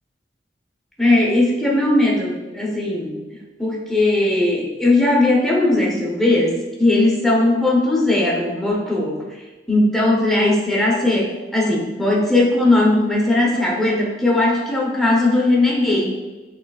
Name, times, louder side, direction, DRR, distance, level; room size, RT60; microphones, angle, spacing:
voice 1, 1.0-3.2 3.6-9.4 9.7-16.1, left 2 dB, ahead, -4 dB, 0.9 m, -18 dB
6.1 x 3.2 x 2.4 m, 1.2 s
head